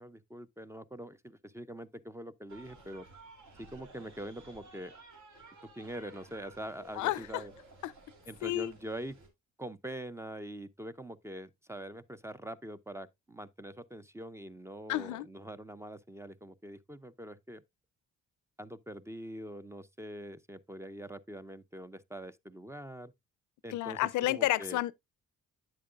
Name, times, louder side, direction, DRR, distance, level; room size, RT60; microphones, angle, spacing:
voice 1, 0.0-3.1 3.6-4.9 5.7-7.5 8.3-9.2 9.6-17.6 18.6-23.1 23.6-24.8, right 1 dB, 10° right, 0.4 m, -44 dB
sound 1, 2.5-9.3, right 2 dB, 70° right, 2.8 m, -55 dB
voice 2, 6.9-7.4 7.8-7.9 8.4-8.7 14.9-15.3 23.7-24.9, left 15 dB, 75° left, 0.5 m, -31 dB
8.7 x 7.5 x 2.4 m
cardioid pair, 90°, 30 cm